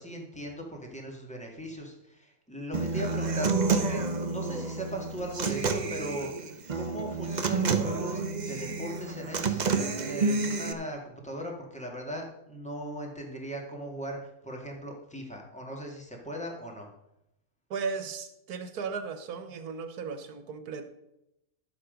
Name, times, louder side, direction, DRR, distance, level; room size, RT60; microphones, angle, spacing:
voice 1, 0.0-16.9, right 1 dB, 5° left, 0 dB, 2.0 m, -39 dB
Human voice / Acoustic guitar, 2.7-10.7, right 4 dB, 40° right, 0.7 m, -29 dB
voice 2, 17.7-20.9, right 5 dB, 85° right, 9 dB, 1.6 m, -36 dB
11.5 x 7.3 x 5.2 m, 0.85 s
omnidirectional pair, 1.6 m